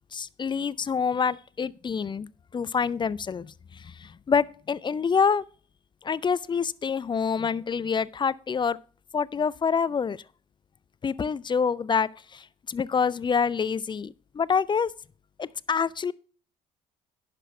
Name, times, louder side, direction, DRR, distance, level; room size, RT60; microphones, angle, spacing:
voice 1, 0.1-5.4 6.0-8.8 9.1-10.2 11.0-14.9 15.4-16.1, left 6 dB, 25° left, 0.4 m, -27 dB
10.5 x 6.1 x 4.3 m
hypercardioid pair, 55°, 21 cm